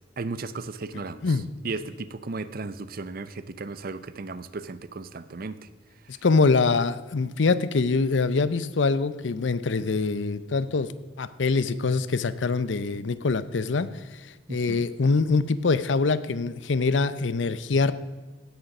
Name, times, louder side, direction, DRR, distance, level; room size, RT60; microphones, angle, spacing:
voice 1, 0.2-5.6 14.5-14.9, right 3 dB, 50° right, 14 dB, 0.6 m, -35 dB
voice 2, 6.2-10.9 11.2-13.9 14.5-17.9, left 4 dB, 75° left, 15 dB, 0.6 m, -24 dB
17.0 x 6.7 x 6.0 m, 1.2 s
head